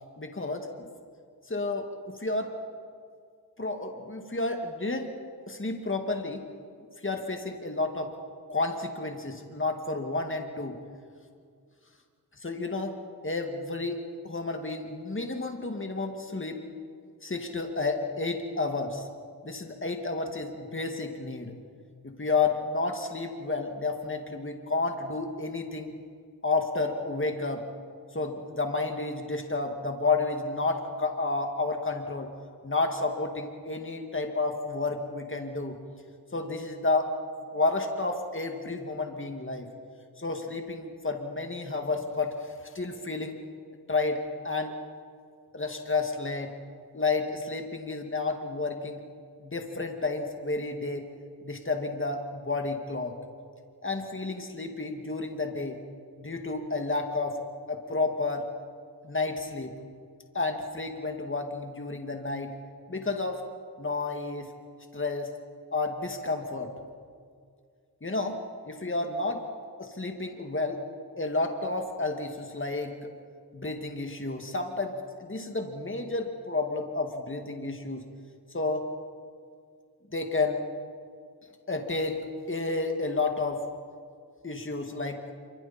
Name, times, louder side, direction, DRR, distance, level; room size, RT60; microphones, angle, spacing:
voice 1, 0.2-0.7 1.5-2.5 3.6-5.1 5.5-6.5 7.0-8.1 8.5-10.8 12.4-13.0 13.2-16.6 17.2-19.1 19.4-21.5 22.0-25.9 26.4-27.6 28.1-32.3 32.6-35.8 36.3-39.7 40.2-43.4 43.9-44.8 45.5-46.5 46.9-49.0 49.4-51.1 51.4-53.2 53.8-55.8 56.2-57.4 57.7-58.5 59.0-59.7 60.3-62.5 62.9-63.4 63.8-64.5 64.9-65.3 65.7-66.7 68.0-68.4 68.7-69.4 69.8-70.8 71.2-73.1 73.5-78.1 78.5-78.9 80.1-80.7 81.7-82.2 82.5-83.6 84.4-85.3, left 3 dB, 30° left, 4 dB, 2.1 m, -31 dB
27.0 x 25.0 x 4.4 m, 2.2 s
cardioid pair, 50°, 38 cm